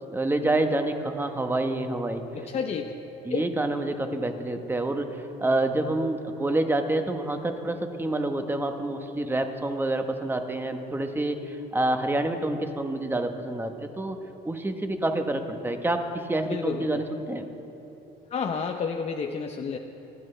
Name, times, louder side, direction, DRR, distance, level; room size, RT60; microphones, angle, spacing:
voice 1, 0.1-2.2 3.2-14.2 14.4-17.5, right 2 dB, 10° right, 6 dB, 1.0 m, -27 dB
voice 2, 2.3-2.9 3.3-3.5 16.5-17.0 18.3-19.8, left 6 dB, 40° left, 3 dB, 0.7 m, -30 dB
25.5 x 10.5 x 3.3 m, 3.0 s
cardioid pair, 110°, 17 cm